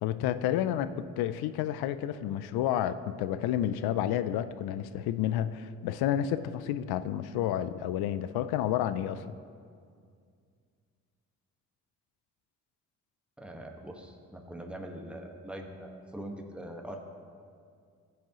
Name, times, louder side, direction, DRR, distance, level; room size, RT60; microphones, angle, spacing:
voice 1, 0.0-9.2, left 11 dB, 80° left, 13 dB, 0.5 m, -30 dB
voice 2, 13.4-17.0, right 1 dB, 5° right, 1 dB, 1.5 m, -42 dB
15.5 x 8.4 x 3.0 m, 2.2 s
supercardioid pair, 50°, 37 cm